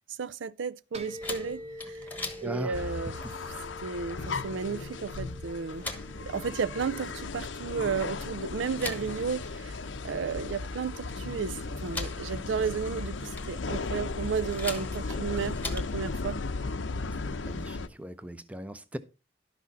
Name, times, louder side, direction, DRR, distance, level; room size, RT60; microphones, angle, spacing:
voice 1, 0.2-2.1 2.4-3.2 3.8-5.9 6.3-9.8 10.0-16.4, right 6 dB, 80° right, 0.5 m, -33 dB
sound 1, 0.9-18.3, equal, 35° right, 1.1 m, -50 dB
sound 2, 1.2-16.0, left 2 dB, 10° left, 1.2 m, -44 dB
voice 2, 2.4-2.9 17.2-19.0, right 1 dB, 5° right, 0.6 m, -39 dB
sound 3, 2.7-17.9, left 3 dB, 85° left, 0.7 m, -36 dB
11.5 x 6.2 x 4.0 m
head